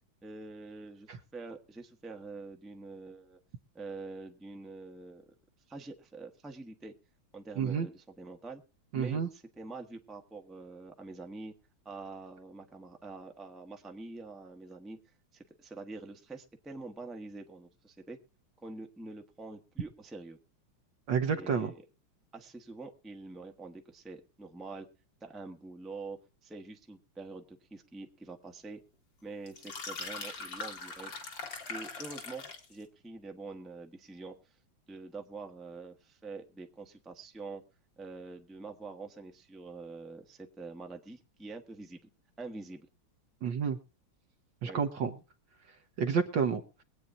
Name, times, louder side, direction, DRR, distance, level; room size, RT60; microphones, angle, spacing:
voice 1, 0.2-3.4 3.7-5.2 5.7-6.9 7.3-8.6 8.9-11.5 11.8-15.0 15.3-18.2 18.6-20.4 21.3-21.8 22.3-24.9 25.2-28.8 29.2-31.1 31.7-34.6 34.9-37.6 38.0-42.0 42.4-42.9 44.6-44.8, right 3 dB, ahead, 3 dB, 0.8 m, -45 dB
voice 2, 7.6-7.9 8.9-9.3 21.1-21.7 43.4-43.8 44.6-45.1 46.0-46.6, right 6 dB, 65° right, 5 dB, 1.6 m, -29 dB
sound 1, 29.5-32.7, left 4 dB, 60° left, 2.8 m, -41 dB
22.5 x 8.7 x 2.6 m, 0.33 s
omnidirectional pair, 2.3 m